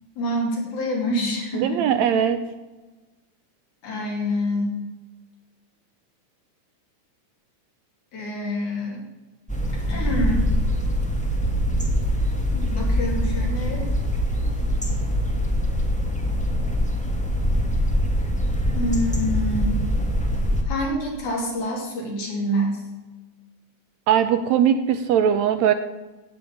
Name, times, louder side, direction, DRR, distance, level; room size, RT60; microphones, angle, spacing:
voice 1, 0.2-2.2 3.8-4.8 8.1-9.0 9.7-10.5 12.5-13.9 18.7-19.8 20.7-22.8, equal, 70° left, -1 dB, 4.4 m, -27 dB
voice 2, 1.6-2.4 24.1-25.7, right 9 dB, 75° right, 10 dB, 1.7 m, -20 dB
sound 1, 9.5-20.6, equal, 5° left, 0.5 m, -23 dB
16.0 x 5.4 x 8.5 m, 1.1 s
omnidirectional pair, 3.5 m